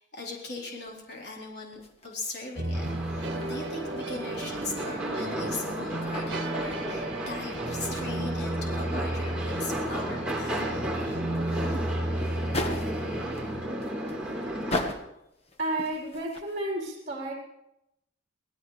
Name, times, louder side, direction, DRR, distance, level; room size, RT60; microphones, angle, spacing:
voice 1, 0.0-10.7 11.5-12.6, left 3 dB, 55° left, -3 dB, 4.1 m, -40 dB
sound 1, 0.9-16.6, left 2 dB, 30° left, 1.4 m, -41 dB
sound 2, 2.5-13.7, right 1 dB, 55° right, 2.2 m, -34 dB
sound 3, 2.7-14.8, right 1 dB, 5° right, 3.9 m, -33 dB
voice 2, 15.6-17.3, right 1 dB, 40° right, -2 dB, 4.2 m, -31 dB
24.5 x 17.5 x 3.3 m, 0.86 s
head